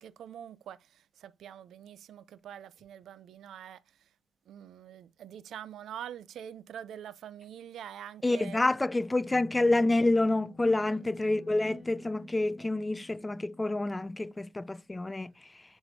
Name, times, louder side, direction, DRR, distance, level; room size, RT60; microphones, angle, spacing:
voice 1, 0.0-3.8 4.5-8.6 10.7-11.0, right 10 dB, 70° right, 0.5 m, -45 dB
voice 2, 8.2-15.6, left 2 dB, 15° left, 0.3 m, -28 dB
sound 1, 9.2-14.2, left 2 dB, 30° left, 1.9 m, -49 dB
7.6 x 4.5 x 2.7 m
cardioid pair, 90°, 0 cm